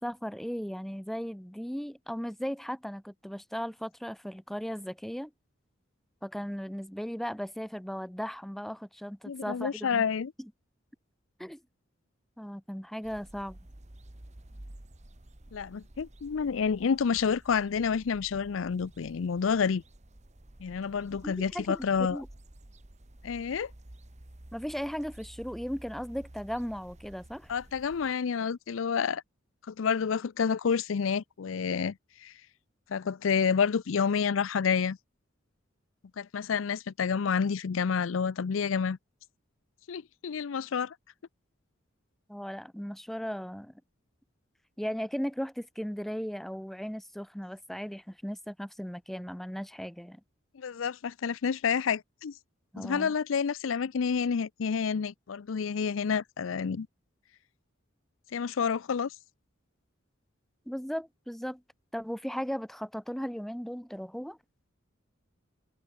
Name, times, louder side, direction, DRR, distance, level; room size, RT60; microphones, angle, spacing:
voice 1, 0.0-5.3 6.2-10.0 10.4-10.5 11.4-11.6 12.4-13.6 21.2-22.3 24.5-27.5 42.3-43.7 44.8-50.2 52.7-53.1 60.7-61.6 61.9-64.4, equal, ahead, 0.6 m, -37 dB
voice 2, 9.3-10.3 15.5-19.8 20.6-22.2 23.2-23.7 27.5-29.2 29.7-32.3 32.9-35.0 36.2-39.0 39.9-40.9 50.5-52.3 52.8-56.9 58.3-59.1, left 6 dB, 75° left, 0.5 m, -29 dB
sound 1, 13.0-28.1, right 1 dB, 35° right, 1.5 m, -52 dB
head